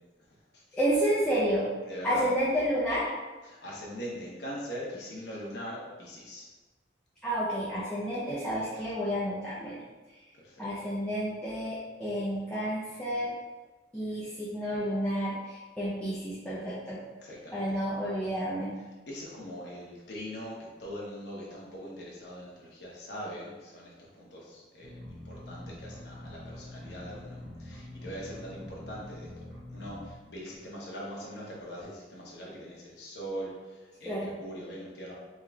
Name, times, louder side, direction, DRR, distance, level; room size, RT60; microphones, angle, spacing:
voice 1, 0.7-1.7 2.0-3.1 7.2-9.8 10.6-13.3 13.9-17.0 17.5-18.8 34.0-34.3, equal, 5° left, -10 dB, 0.6 m, -30 dB
voice 2, 1.8-2.3 3.4-6.5 10.4-10.6 17.2-17.8 19.1-35.1, equal, 60° left, -5 dB, 1.0 m, -42 dB
sound 1, 24.8-30.1, left 1 dB, 80° right, 1.3 m, -45 dB
3.7 x 3.1 x 3.4 m, 1.2 s
head